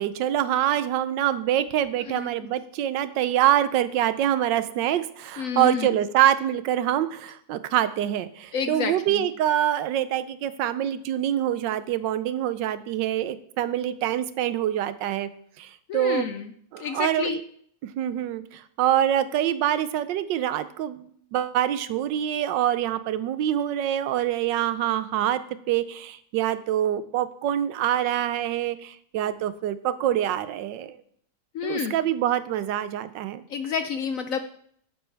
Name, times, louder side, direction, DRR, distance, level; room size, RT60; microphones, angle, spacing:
voice 1, 0.0-15.3 15.6-16.3 16.7-17.4 17.8-25.4 25.7-31.0 31.6-33.4, right 11 dB, 85° right, 14 dB, 1.3 m, -25 dB
voice 2, 5.4-5.9 8.5-9.3 15.9-16.5 16.8-17.4 31.5-31.9 33.5-34.4, left 7 dB, 70° left, 8 dB, 0.8 m, -29 dB
11.0 x 9.7 x 3.4 m, 0.65 s
omnidirectional pair, 1.9 m